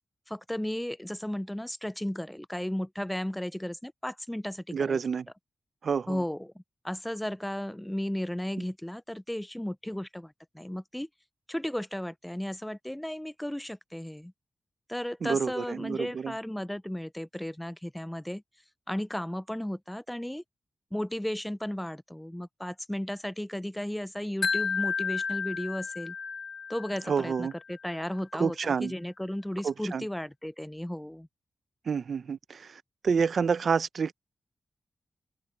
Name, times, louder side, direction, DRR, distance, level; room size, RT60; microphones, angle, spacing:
voice 1, 0.3-5.0 6.1-6.5 6.8-11.1 11.5-14.3 14.9-18.4 18.9-20.4 20.9-26.2 26.7-31.3, left 1 dB, 5° left, 0.3 m, -34 dB
voice 2, 4.7-5.3 5.8-6.2 15.2-16.3 27.1-27.5 28.3-28.9 29.6-30.1 31.9-34.1, right 6 dB, 65° right, 0.7 m, -29 dB
Wind chime, 24.4-27.5, left 5 dB, 50° left, 0.8 m, -32 dB
open air
cardioid pair, 80°, 0 cm